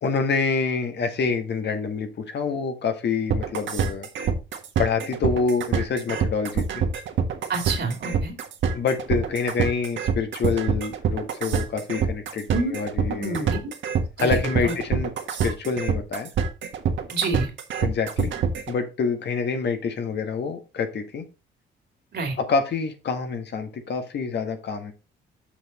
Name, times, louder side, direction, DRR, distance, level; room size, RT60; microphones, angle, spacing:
voice 1, 0.0-4.1 4.8-6.9 8.7-13.5 14.2-15.1 15.4-16.3 17.8-18.3 18.7-21.3 22.4-24.9, left 5 dB, 60° left, 6 dB, 1.6 m, -27 dB
sound 1, 3.3-18.7, right 7 dB, 75° right, 1.6 m, -25 dB
voice 2, 7.5-8.3 12.5-12.8 13.0-13.7 14.2-14.7 17.1-17.5 22.1-22.4, right 3 dB, 55° right, 5 dB, 2.6 m, -28 dB
6.8 x 6.0 x 4.1 m, 0.30 s
cardioid pair, 90°, 20 cm